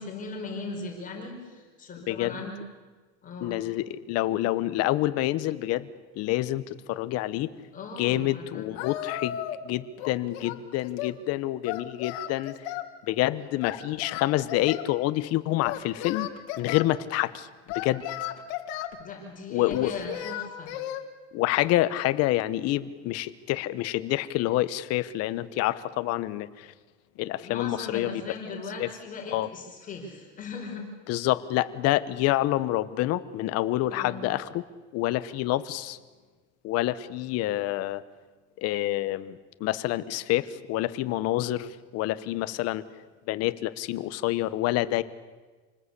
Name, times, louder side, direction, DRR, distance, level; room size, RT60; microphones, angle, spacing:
voice 1, 0.0-2.6 3.2-3.6 7.7-8.7 19.0-20.7 27.4-30.9 31.2-31.3 33.9-34.3, left 3 dB, 25° left, 1 dB, 5.2 m, -38 dB
voice 2, 2.1-2.4 3.4-5.9 6.1-7.5 8.0-9.4 9.6-12.5 13.1-16.3 16.6-17.5 17.7-18.0 19.5-19.9 21.3-26.7 27.2-28.2 28.8-28.9 29.3-29.5 31.1-34.6 34.9-36.0 36.6-38.0 38.6-42.8 43.3-45.0, left 15 dB, 45° left, 14 dB, 1.2 m, -27 dB
Singing, 8.8-9.7 10.0-11.2 11.6-12.9 13.6-14.9 15.6-16.9 17.7-19.0 19.7-21.0, left 12 dB, 65° left, 2.4 m, -35 dB
27.5 x 20.0 x 8.4 m, 1.3 s
cardioid pair, 150°, 33 cm